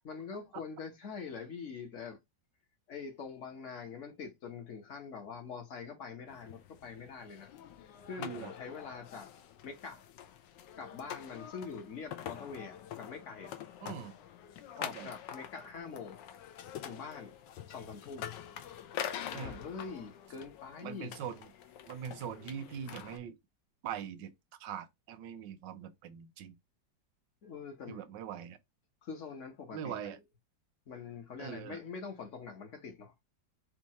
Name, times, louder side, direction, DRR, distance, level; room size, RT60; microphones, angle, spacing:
voice 1, 0.0-2.2 2.9-7.5 8.1-9.3 9.6-10.0 10.8-13.6 14.8-16.2 16.8-17.4 17.7-18.3 19.3-21.2 27.4-28.0 29.0-30.1 30.9-33.1, left 5 dB, 50° left, 1.2 m, -44 dB
sound 1, 6.3-23.2, left 9 dB, 80° left, 1.3 m, -45 dB
voice 2, 8.2-8.5 13.8-14.1 14.8-15.1 19.3-19.6 20.8-21.5 21.9-23.4 23.8-24.3 24.6-26.6 27.9-28.6 29.7-30.2 31.4-31.8, right 8 dB, 80° right, 1.3 m, -42 dB
4.6 x 2.4 x 4.1 m
omnidirectional pair, 2.0 m